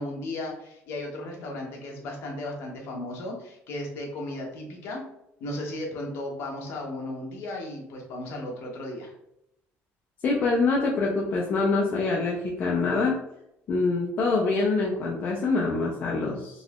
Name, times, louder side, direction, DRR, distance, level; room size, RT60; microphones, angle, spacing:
voice 1, 0.0-5.0 5.4-9.1, left 1 dB, 60° left, 0 dB, 1.0 m, -35 dB
voice 2, 10.2-13.2 13.7-16.6, left 3 dB, 35° left, -2 dB, 0.5 m, -25 dB
3.9 x 2.8 x 2.4 m, 0.81 s
cardioid pair, 175°, 5 cm